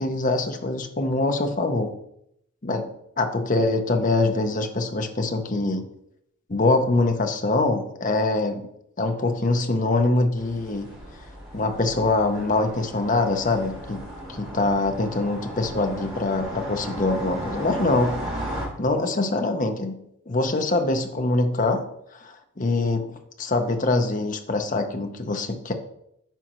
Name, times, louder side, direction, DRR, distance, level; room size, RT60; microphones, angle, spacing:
voice 1, 0.0-1.9 2.6-2.9 3.2-5.8 6.5-8.7 9.0-10.9 11.5-18.1 18.8-19.9 20.3-21.8 22.1-25.7, left 2 dB, 35° left, 5 dB, 0.7 m, -24 dB
sound 1, 10.4-18.7, equal, 25° right, 2.1 m, -35 dB
9.0 x 5.0 x 3.1 m, 0.76 s
head